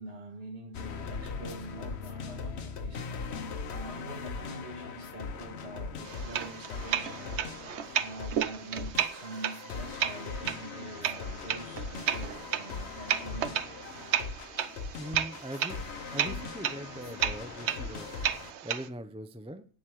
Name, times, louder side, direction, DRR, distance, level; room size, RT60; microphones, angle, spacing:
voice 1, 0.0-3.4 3.7-7.4 8.0-13.6, right 2 dB, 65° right, -3 dB, 6.2 m, -45 dB
sound 1, 0.7-18.5, left 5 dB, 75° left, 1.2 m, -40 dB
sound 2, 6.0-18.9, right 9 dB, 80° right, 1.0 m, -34 dB
voice 2, 14.7-15.8 16.1-19.7, right 1 dB, 5° right, 10 dB, 0.5 m, -42 dB
9.0 x 7.8 x 7.7 m, 0.43 s
omnidirectional pair, 1.1 m